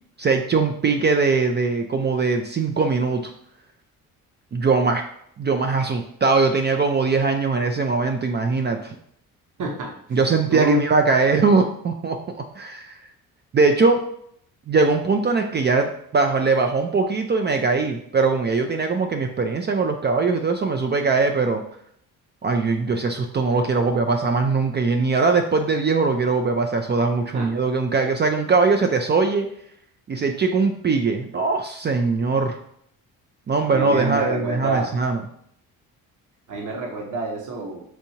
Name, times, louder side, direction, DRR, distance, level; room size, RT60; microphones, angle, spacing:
voice 1, 0.2-3.3 4.5-5.0 5.4-8.9 10.1-13.0 13.5-14.0 14.7-21.6 22.4-29.5 30.1-32.6 33.5-35.2, right 4 dB, 30° right, 4 dB, 0.4 m, -21 dB
voice 2, 9.6-10.2 10.5-10.8 27.3-27.5 33.7-34.9 36.5-37.8, right 1 dB, 50° right, -1 dB, 1.0 m, -27 dB
4.6 x 2.6 x 2.8 m, 0.69 s
supercardioid pair, 60°, 39 cm